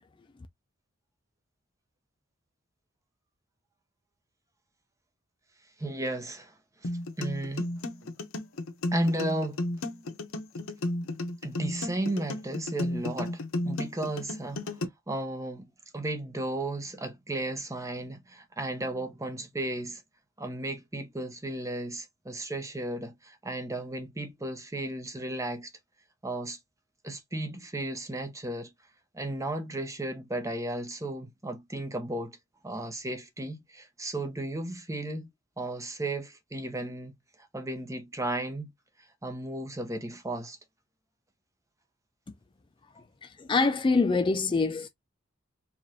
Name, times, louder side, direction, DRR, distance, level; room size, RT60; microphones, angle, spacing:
voice 1, 5.8-6.6 6.8-6.9 7.2-7.7 8.9-9.6 11.4-14.8 15.1-20.0 20.4-25.7 26.2-26.6 27.0-28.7 29.1-32.4 32.6-35.3 35.6-37.1 37.5-38.7 39.2-40.6, right 1 dB, 15° right, 0.8 m, -34 dB
sound 1, 6.8-14.8, left 1 dB, 80° left, 0.8 m, -33 dB
voice 2, 43.5-44.9, left 4 dB, 25° left, 0.4 m, -24 dB
4.9 x 2.5 x 2.7 m
head